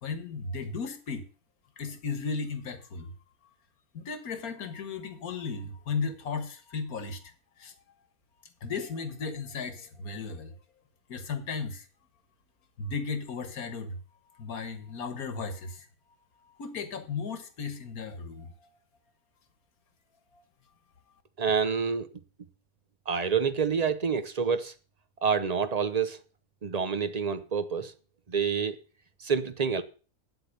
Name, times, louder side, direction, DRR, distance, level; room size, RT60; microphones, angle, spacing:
voice 1, 0.0-1.3 1.8-3.1 3.4-3.5 3.9-7.8 8.6-10.5 11.1-11.9 12.8-14.0 14.3-15.9 16.4-18.7 20.3-20.4, left 5 dB, 70° left, 1.8 m, -35 dB
voice 2, 21.4-22.1 23.1-24.7 25.2-26.2 26.6-27.9 28.3-28.8 29.2-29.8, right 6 dB, 40° right, 0.6 m, -27 dB
9.2 x 7.9 x 6.7 m
omnidirectional pair, 1.6 m